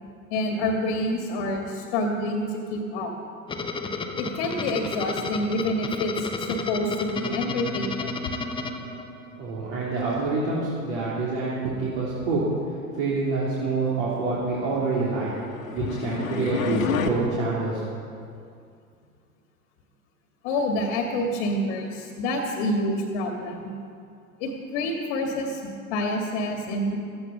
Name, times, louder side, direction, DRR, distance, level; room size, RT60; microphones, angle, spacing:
voice 1, 0.3-3.1 4.2-8.1 20.4-23.7 24.4-27.0, left 1 dB, 45° left, 3 dB, 1.9 m, -27 dB
sound 1, 3.5-9.5, left 3 dB, 10° left, 1.1 m, -32 dB
voice 2, 9.4-12.5 12.9-15.3 15.7-17.8, right 3 dB, 50° right, -7 dB, 3.5 m, -26 dB
sound 2, 15.2-17.1, left 6 dB, 60° left, 1.5 m, -29 dB
16.0 x 14.0 x 5.5 m, 2.4 s
figure-of-eight pair, 90°, 44 cm